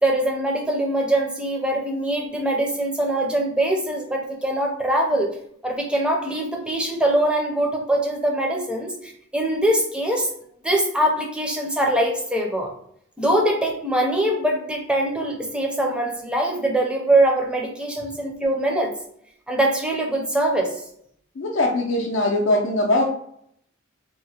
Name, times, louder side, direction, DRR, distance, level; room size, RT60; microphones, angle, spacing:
voice 1, 0.0-5.4 5.6-10.3 10.6-12.7 13.2-18.9 19.5-20.8, right 1 dB, 5° right, 0 dB, 0.5 m, -23 dB
voice 2, 21.4-23.0, left 1 dB, 70° left, -3 dB, 0.5 m, -21 dB
2.9 x 2.1 x 2.7 m, 0.68 s
head